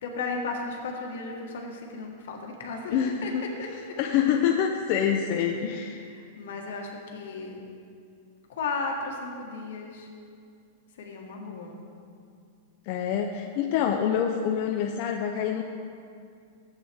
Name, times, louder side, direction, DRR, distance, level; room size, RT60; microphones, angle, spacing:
voice 1, 0.0-3.3 3.6-3.7 4.3-4.5 6.0-7.6 8.5-10.1 11.0-11.8, left 4 dB, 75° left, 1 dB, 1.5 m, -35 dB
voice 2, 2.9-3.5 4.0-6.0 12.8-15.6, left 8 dB, 40° left, 3 dB, 0.4 m, -26 dB
12.0 x 8.1 x 3.5 m, 2.4 s
supercardioid pair, 160°, 0 cm